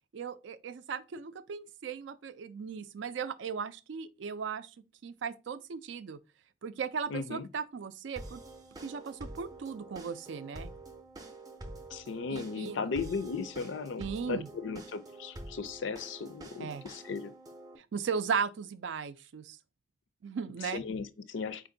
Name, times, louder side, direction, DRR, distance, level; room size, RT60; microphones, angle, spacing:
voice 1, 0.1-4.7 5.0-6.2 6.6-8.4 8.8-10.7 12.3-12.8 14.0-14.5 16.6-16.8 17.8-19.6 20.2-20.8, right 6 dB, 75° right, 0.4 m, -37 dB
voice 2, 7.1-7.5 11.9-17.3 20.7-21.7, left 5 dB, 80° left, 0.4 m, -36 dB
sound 1, 8.2-17.8, right 2 dB, 20° right, 0.5 m, -47 dB
4.4 x 2.5 x 3.7 m
head